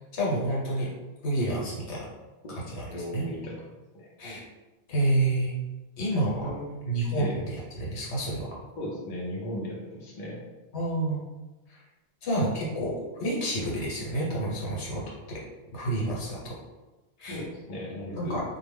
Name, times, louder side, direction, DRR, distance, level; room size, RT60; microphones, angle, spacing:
voice 1, 0.1-0.9 1.2-2.0 2.7-2.9 3.1-3.2 4.2-4.4 4.9-5.5 6.0-6.5 6.9-7.3 7.5-8.5 10.7-11.2 12.2-12.9 13.2-15.0 15.3-15.4 15.7-16.5 17.2-17.4 18.1-18.4, right 1 dB, 75° left, -5 dB, 1.1 m, -28 dB
voice 2, 2.9-4.1 6.4-6.7 7.1-7.4 8.8-10.4 17.3-18.4, equal, 50° left, -3 dB, 0.7 m, -36 dB
2.3 x 2.1 x 3.4 m, 1.1 s
omnidirectional pair, 1.1 m